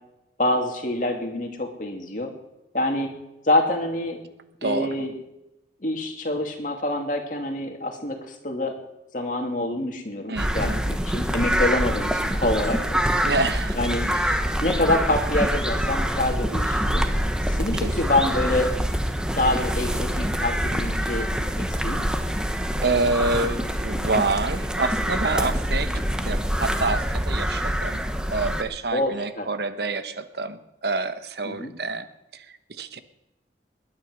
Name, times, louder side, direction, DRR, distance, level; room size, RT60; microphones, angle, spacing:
voice 1, 0.4-2.3 2.7-3.1 3.4-4.2 4.6-5.1 5.8-8.8 9.1-13.0 13.8-14.0 14.6-17.1 17.4-18.7 19.3-22.1 28.9-29.5 31.4-31.7, left 1 dB, 45° left, 3 dB, 2.6 m, -26 dB
voice 2, 4.6-5.0 10.3-10.8 13.2-13.8 14.1-14.5 17.7-17.9 22.8-28.0 28.3-33.0, right 3 dB, 70° right, 10 dB, 1.1 m, -27 dB
sound 1, 10.4-28.6, equal, 5° right, 1.1 m, -25 dB
21.0 x 10.0 x 6.4 m, 0.93 s
head